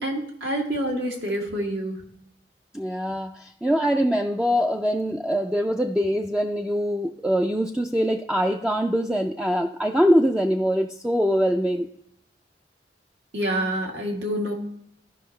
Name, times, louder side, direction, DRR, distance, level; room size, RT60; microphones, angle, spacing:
voice 1, 0.0-2.0 13.3-14.5, right 1 dB, 80° right, 0 dB, 1.9 m, -27 dB
voice 2, 2.7-12.0, equal, 5° right, 3 dB, 0.3 m, -23 dB
13.5 x 5.4 x 3.2 m, 0.74 s
head